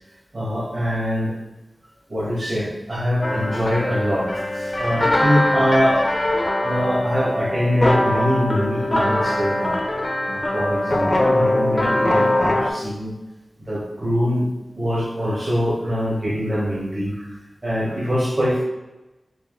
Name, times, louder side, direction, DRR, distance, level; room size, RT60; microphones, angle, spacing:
voice 1, 0.3-1.3 2.1-9.8 10.3-13.1 13.6-14.5 14.7-17.3 17.6-18.6, equal, 45° right, -7 dB, 1.5 m, -23 dB
sound 1, 3.2-12.7, left 1 dB, 45° left, 0.4 m, -22 dB
4.6 x 2.5 x 3.1 m, 1.0 s
wide cardioid pair, 60°, 0 cm